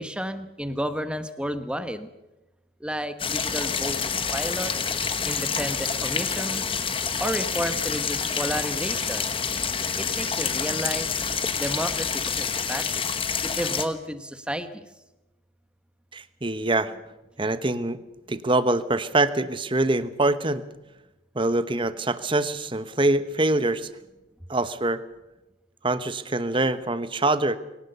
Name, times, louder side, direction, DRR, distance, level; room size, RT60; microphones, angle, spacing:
voice 1, 0.0-2.1 2.8-4.7 5.2-6.6 7.2-9.3 10.0-11.1 11.6-13.0 13.6-14.9, equal, 5° right, 10 dB, 1.2 m, -31 dB
sound 1, 3.2-13.9, left 6 dB, 25° left, 1.3 m, -27 dB
voice 2, 16.1-16.9 17.4-18.0 18.3-20.6 21.3-23.9 24.5-25.0 25.8-27.6, right 2 dB, 25° right, 12 dB, 1.0 m, -24 dB
23.5 x 18.0 x 6.9 m, 1.0 s
head